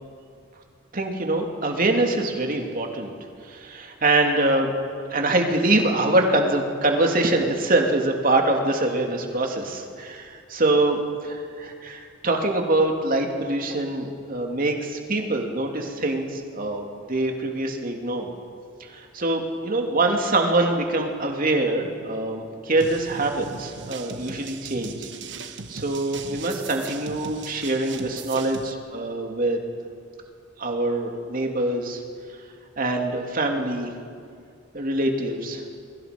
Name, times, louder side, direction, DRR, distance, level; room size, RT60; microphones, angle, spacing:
voice 1, 0.9-3.1 3.5-4.7 5.1-18.3 18.9-25.1 25.4-29.6 30.6-32.0 32.8-33.9 34.7-35.6, right 2 dB, 45° right, 2 dB, 2.9 m, -24 dB
sound 1, 22.8-28.7, right 5 dB, 65° right, 1.3 m, -38 dB
28.5 x 23.5 x 5.3 m, 2.3 s
head